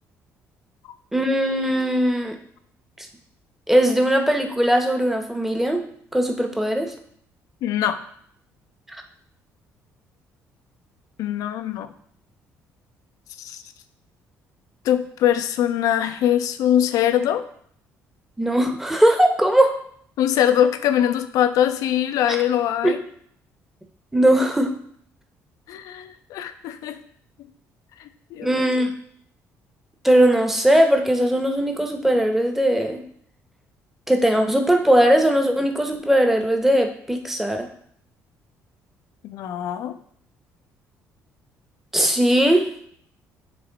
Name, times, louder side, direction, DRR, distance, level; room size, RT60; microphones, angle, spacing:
voice 1, 1.1-2.4 3.7-5.8 6.1-6.9 18.4-19.8 22.3-22.4 22.8-22.9 24.1-24.7 28.4-28.9 30.0-33.0 34.1-37.7 41.9-42.7, right 1 dB, 5° right, 4 dB, 0.9 m, -19 dB
voice 2, 7.6-8.0 11.2-11.9 13.4-13.6 14.8-17.4 20.2-23.0 25.7-27.0 28.0-28.7 39.2-40.0, left 10 dB, 75° left, 10 dB, 0.5 m, -22 dB
7.8 x 3.2 x 4.0 m, 0.64 s
supercardioid pair, 80°, 6 cm